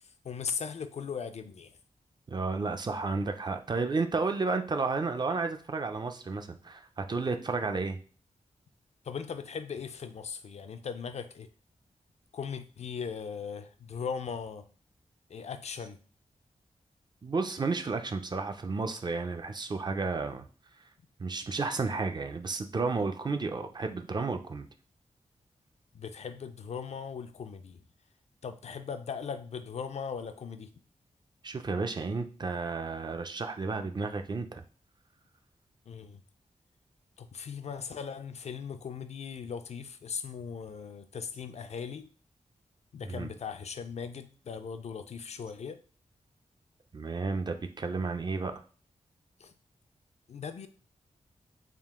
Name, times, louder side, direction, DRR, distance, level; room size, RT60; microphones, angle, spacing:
voice 1, 0.2-1.7 9.0-11.5 12.3-14.7 15.3-16.0 25.9-27.8 28.4-30.7 35.9-36.2 37.2-42.1 42.9-45.8 49.4-49.5 50.3-50.7, left 6 dB, 60° left, 9 dB, 0.4 m, -38 dB
voice 2, 2.3-8.0 17.2-20.4 21.2-24.7 31.4-34.6 43.0-43.3 46.9-48.5, right 4 dB, 35° right, 7 dB, 0.4 m, -32 dB
3.6 x 2.4 x 3.5 m, 0.39 s
wide cardioid pair, 120°, 12 cm